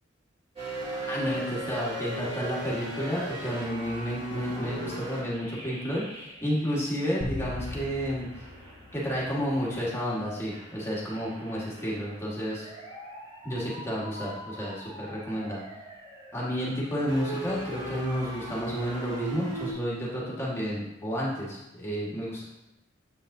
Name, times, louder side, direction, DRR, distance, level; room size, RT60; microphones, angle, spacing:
sound 1, 0.6-7.1 7.6-19.7, right 1 dB, 30° right, 2.1 m, -39 dB
voice 1, 1.0-8.3 8.9-12.7 13.4-15.6 16.3-22.4, equal, 15° left, -6 dB, 1.5 m, -31 dB
sound 2, 7.2-9.7, left 2 dB, 60° left, 0.8 m, -39 dB
7.6 x 7.0 x 2.7 m, 0.94 s
head